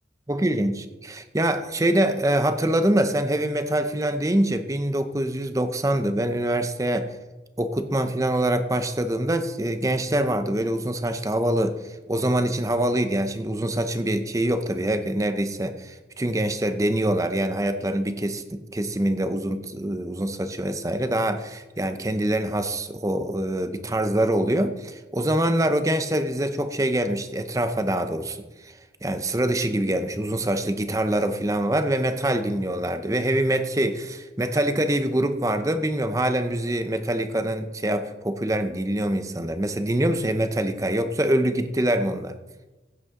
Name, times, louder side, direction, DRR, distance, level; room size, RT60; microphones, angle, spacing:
voice 1, 0.3-7.1 7.6-11.8 12.1-28.4 28.6-42.3, right 1 dB, 20° right, 9 dB, 0.7 m, -24 dB
16.0 x 8.0 x 3.7 m, 1.1 s
head